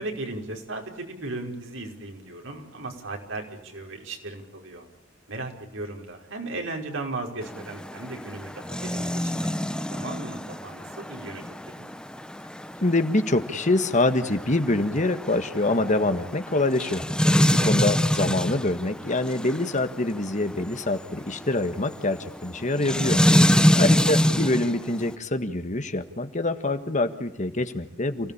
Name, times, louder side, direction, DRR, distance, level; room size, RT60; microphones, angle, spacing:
voice 1, 0.0-4.9 5.3-11.9 17.6-17.8 23.8-24.2, right 2 dB, 70° right, 2 dB, 5.4 m, -36 dB
sound 1, 7.4-25.1, equal, 5° left, 1.0 m, -26 dB
voice 2, 12.8-17.0 17.5-23.2 23.5-28.3, left 2 dB, 40° left, 9 dB, 1.7 m, -25 dB
29.0 x 17.5 x 8.7 m, 0.91 s
head